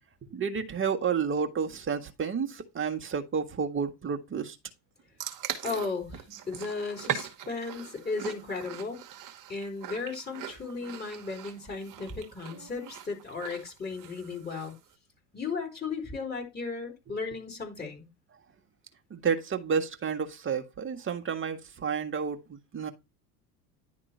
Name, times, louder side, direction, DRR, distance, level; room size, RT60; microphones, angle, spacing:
voice 1, 0.3-4.6 10.9-11.0 19.1-22.9, right 6 dB, 25° right, 1.5 m, -31 dB
sound 1, 5.2-14.8, right 9 dB, 40° right, 1.4 m, -40 dB
voice 2, 5.6-9.0 9.5-14.7 15.3-18.1, left 4 dB, 20° left, 3.9 m, -35 dB
10.5 x 3.7 x 4.4 m
hypercardioid pair, 80°, 46 cm